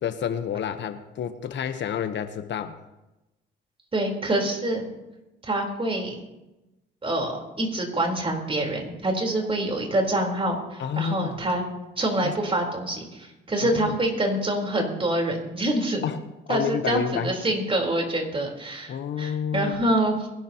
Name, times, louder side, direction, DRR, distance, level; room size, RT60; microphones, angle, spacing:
voice 1, 0.0-2.8 10.8-11.4 12.2-12.3 13.6-13.9 16.0-16.2 16.5-17.3 18.9-19.9, left 8 dB, 65° left, 9 dB, 1.1 m, -29 dB
voice 2, 3.9-4.8 5.4-6.1 7.0-11.6 12.0-16.0 16.5-20.3, right 1 dB, 25° right, 1 dB, 4.1 m, -26 dB
22.5 x 12.0 x 3.0 m, 0.99 s
cardioid pair, 90°, 20 cm